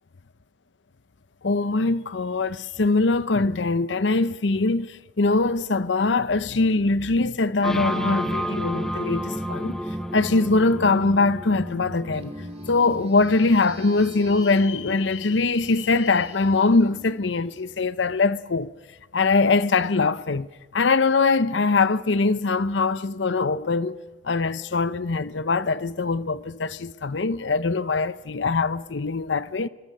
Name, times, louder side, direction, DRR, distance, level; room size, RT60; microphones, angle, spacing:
voice 1, 1.4-9.8 10.1-12.3 12.7-18.7 19.1-29.7, left 3 dB, 75° left, 0.7 m, -22 dB
sound 1, 7.6-17.3, equal, 5° left, 1.6 m, -32 dB
sound 2, 12.1-18.1, right 3 dB, 35° right, 3.3 m, -45 dB
27.5 x 24.0 x 6.7 m
head